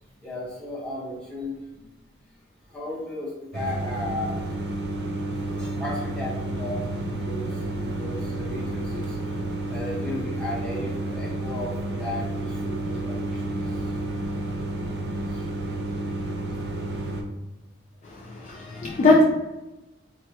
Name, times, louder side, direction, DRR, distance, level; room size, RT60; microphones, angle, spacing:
voice 1, 0.2-1.9 2.7-4.4 5.6-9.2 9.7-14.2 14.7-14.9 15.3-15.5, left 1 dB, 5° left, -7 dB, 0.9 m, -35 dB
sound 1, 3.5-17.2, right 2 dB, 60° right, 0.5 m, -30 dB
voice 2, 18.0-19.2, left 2 dB, 35° left, -3 dB, 0.3 m, -21 dB
4.3 x 2.2 x 2.7 m, 1.0 s
head